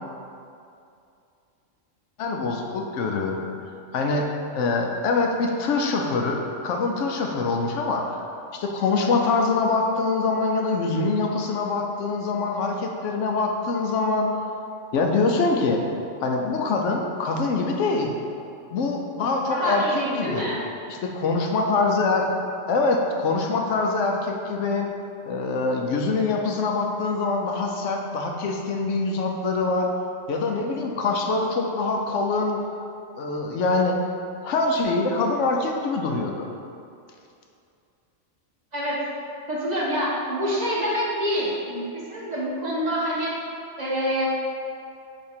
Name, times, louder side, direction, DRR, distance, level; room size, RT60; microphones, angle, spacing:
voice 1, 2.2-3.4 3.9-4.3 4.5-8.2 8.5-14.3 14.9-15.8 16.2-18.2 18.7-20.4 20.9-22.3 22.7-24.9 25.3-29.9 30.3-32.6 33.2-34.0 34.4-36.5, left 3 dB, 75° left, 2 dB, 0.9 m, -24 dB
voice 2, 19.5-20.6 38.7-39.0 39.5-43.3 43.8-44.3, equal, 35° right, -6 dB, 1.1 m, -26 dB
8.4 x 2.9 x 4.4 m, 2.6 s
omnidirectional pair, 1.3 m